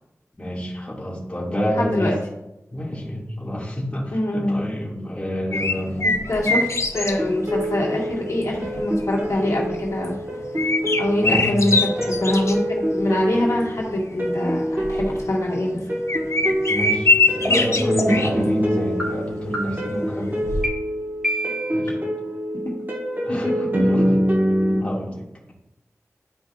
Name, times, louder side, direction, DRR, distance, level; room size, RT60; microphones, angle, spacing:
voice 1, 0.4-2.2 2.7-6.1 11.2-11.8 16.7-20.5 21.7-22.1 23.2-24.1 24.7-25.5, equal, 20° left, -5 dB, 2.1 m, -28 dB
voice 2, 1.8-2.1 4.1-4.7 6.0-6.7 6.9-10.2 11.0-15.8 17.5-17.9 18.1-18.5 23.3-24.0, left 1 dB, 75° left, -3 dB, 2.0 m, -24 dB
sound 1, 5.5-20.7, left 2 dB, 60° left, 0.6 m, -25 dB
sound 2, 6.9-24.8, equal, 35° right, 1.5 m, -26 dB
sound 3, 17.4-17.5 18.0-18.4 19.0-19.1 19.5-20.0 20.6-20.7 21.2-21.8, equal, 10° right, 2.5 m, -27 dB
12.0 x 4.9 x 2.4 m, 0.92 s
wide cardioid pair, 65°, 6 cm